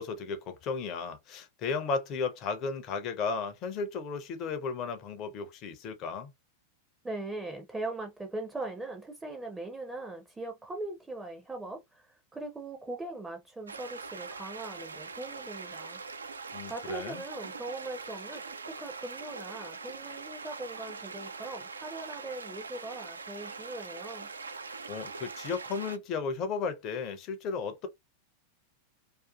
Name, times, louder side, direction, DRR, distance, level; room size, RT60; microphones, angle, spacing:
voice 1, 0.0-6.3 16.5-17.2 24.9-27.9, left 5 dB, 35° left, 0.5 m, -34 dB
voice 2, 7.0-16.0 16.7-24.3, right 2 dB, 10° right, 0.5 m, -40 dB
sound 1, 13.7-26.0, right 4 dB, 75° right, 0.3 m, -42 dB
2.5 x 2.3 x 2.3 m
figure-of-eight pair, 90°, 0 cm